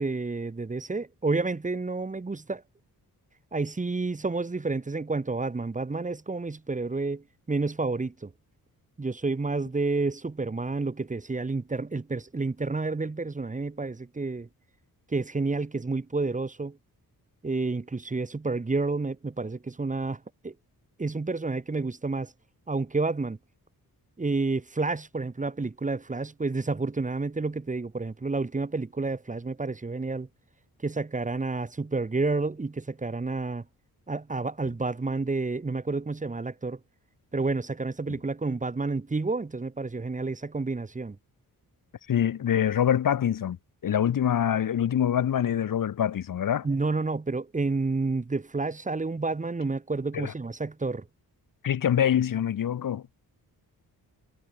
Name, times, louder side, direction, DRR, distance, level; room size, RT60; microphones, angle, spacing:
voice 1, 0.0-2.6 3.5-8.3 9.0-14.5 15.1-16.8 17.4-20.5 21.0-22.3 22.7-23.4 24.2-30.3 30.8-33.6 34.1-36.8 37.3-41.2 46.6-51.1, right 3 dB, 20° right, 1.9 m, -30 dB
voice 2, 42.1-43.6 43.8-46.7 50.1-50.3 51.6-53.0, left 9 dB, 60° left, 1.2 m, -25 dB
wide cardioid pair, 150°, 37 cm